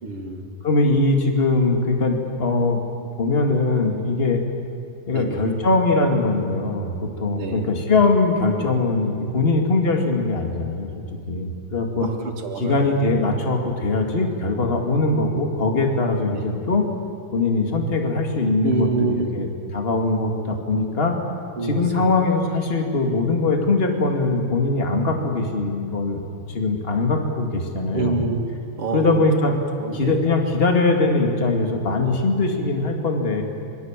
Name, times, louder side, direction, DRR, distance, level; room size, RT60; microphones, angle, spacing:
voice 1, 0.0-0.5 5.1-5.5 7.3-7.7 12.0-13.1 16.2-16.5 18.6-19.4 21.6-22.1 27.9-28.4 28.8-29.2 29.8-30.2, right 4 dB, 85° right, 3 dB, 3.3 m, -27 dB
voice 2, 0.6-2.8 3.2-4.4 5.1-10.9 11.3-12.1 12.6-16.9 17.3-19.5 19.7-21.2 21.6-28.2 28.9-29.5 29.9-33.4, left 3 dB, 25° left, 3 dB, 2.5 m, -21 dB
26.5 x 22.5 x 7.5 m, 2.6 s
omnidirectional pair, 2.4 m